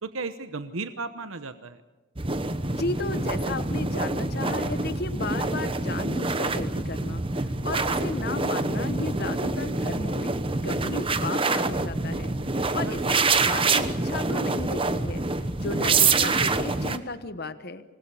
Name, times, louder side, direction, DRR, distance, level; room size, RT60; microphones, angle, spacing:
voice 1, 0.0-1.8 12.6-13.1, right 3 dB, 70° right, 9 dB, 1.0 m, -35 dB
sound 1, 2.2-17.0, right 3 dB, 25° right, 1.0 m, -26 dB
voice 2, 2.7-10.4 10.6-17.8, left 3 dB, 45° left, 11 dB, 1.1 m, -34 dB
26.0 x 20.0 x 6.9 m, 1.1 s
head